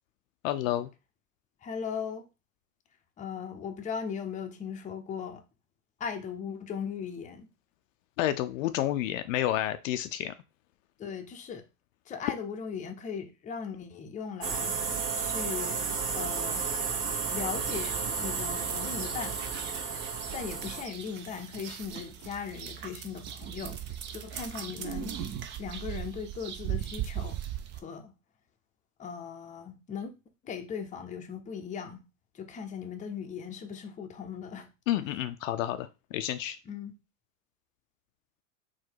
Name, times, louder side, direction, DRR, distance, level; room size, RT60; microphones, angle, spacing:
voice 1, 0.4-0.9 8.2-10.3 34.9-36.6, left 13 dB, 65° left, 0.5 m, -30 dB
voice 2, 1.6-2.3 3.2-5.4 6.0-7.5 11.0-11.7 12.1-14.8 15.2-15.8 16.1-16.6 17.3-19.4 20.3-25.2 25.6-27.4 27.7-28.1 29.0-30.1 30.4-32.0 32.3-34.7 36.7-36.9, left 7 dB, 15° left, 0.6 m, -38 dB
sound 1, 14.4-20.8, right 5 dB, 50° right, 1.2 m, -32 dB
sound 2, 17.6-27.8, right 10 dB, 25° right, 0.4 m, -39 dB
3.9 x 2.2 x 4.4 m
hypercardioid pair, 90°, 44 cm